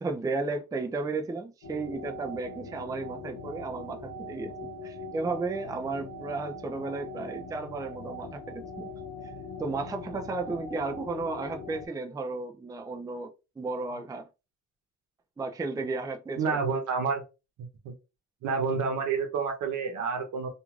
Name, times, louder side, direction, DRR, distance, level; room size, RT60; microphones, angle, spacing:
voice 1, 0.0-8.9 9.6-14.3 15.4-16.6, right 3 dB, 10° right, 0.4 m, -34 dB
sound 1, 1.6-11.9, left 2 dB, 80° left, 0.6 m, -41 dB
voice 2, 16.4-17.2 17.6-17.9 18.4-20.5, right 5 dB, 75° right, 0.9 m, -29 dB
3.0 x 2.5 x 2.4 m
cardioid pair, 90°, 30 cm